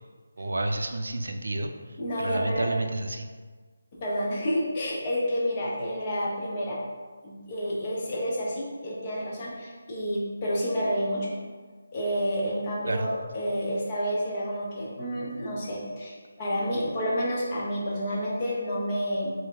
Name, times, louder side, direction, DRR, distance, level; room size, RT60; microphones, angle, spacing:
voice 1, 0.4-3.3 12.8-13.1, right 2 dB, 80° right, 5 dB, 0.4 m, -30 dB
voice 2, 2.0-2.7 4.0-6.8 7.2-11.4 11.9-19.3, equal, 25° left, -4 dB, 0.8 m, -29 dB
3.4 x 2.6 x 3.7 m, 1.4 s
figure-of-eight pair, 170°, 0 cm